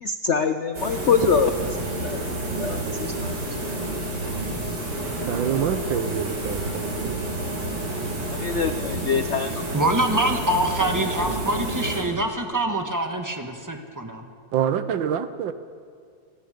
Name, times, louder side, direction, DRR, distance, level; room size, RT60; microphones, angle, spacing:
voice 1, 0.0-1.5 2.0-2.2 2.6-3.3 8.3-9.6, left 6 dB, 65° left, 9 dB, 0.6 m, -24 dB
sound 1, 0.7-12.4, right 2 dB, 55° right, 4.9 m, -29 dB
voice 2, 5.3-7.2 14.5-15.5, right 8 dB, 70° right, 12 dB, 1.5 m, -26 dB
voice 3, 9.7-14.2, right 1 dB, 10° right, 4 dB, 1.3 m, -25 dB
29.0 x 19.0 x 5.2 m, 2.2 s
omnidirectional pair, 2.2 m